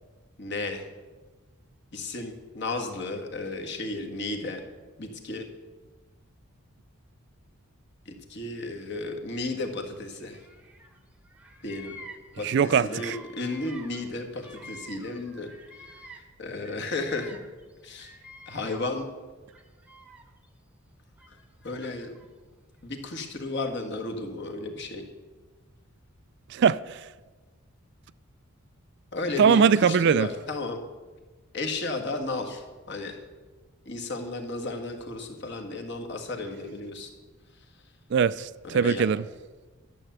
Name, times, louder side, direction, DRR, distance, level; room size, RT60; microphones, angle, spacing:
voice 1, 0.4-0.9 1.9-4.6 5.0-5.5 8.0-10.4 11.6-12.0 12.4-15.5 16.4-17.4 17.8-18.1 18.5-19.1 21.6-22.1 22.8-25.0 29.1-30.8 31.5-33.2 33.8-37.1 38.6-39.0, left 2 dB, 50° left, 1.7 m, -33 dB
Bird vocalization bird call bird song, 10.2-11.0 11.2-16.3 16.6-19.0 19.5-20.5 21.2-22.3, equal, 5° right, 0.9 m, -49 dB
voice 2, 12.4-13.2 26.5-27.1 29.4-30.3 38.1-39.3, right 6 dB, 50° right, 0.3 m, -21 dB
12.0 x 6.9 x 7.9 m
head